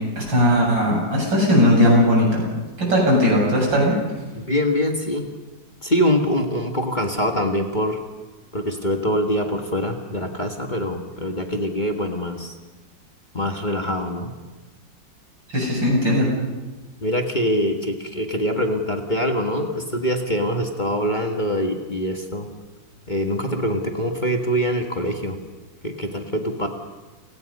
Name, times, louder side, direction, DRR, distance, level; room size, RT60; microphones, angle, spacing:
voice 1, 0.2-2.5 2.8-3.9 15.5-16.3, equal, 85° right, -2 dB, 8.4 m, -18 dB
voice 2, 4.3-5.3 5.8-8.0 8.5-12.5 13.3-14.3 17.0-22.5 23.1-25.4 25.8-26.7, equal, 25° left, 3 dB, 1.7 m, -24 dB
30.0 x 18.5 x 5.4 m, 1.2 s
omnidirectional pair, 2.0 m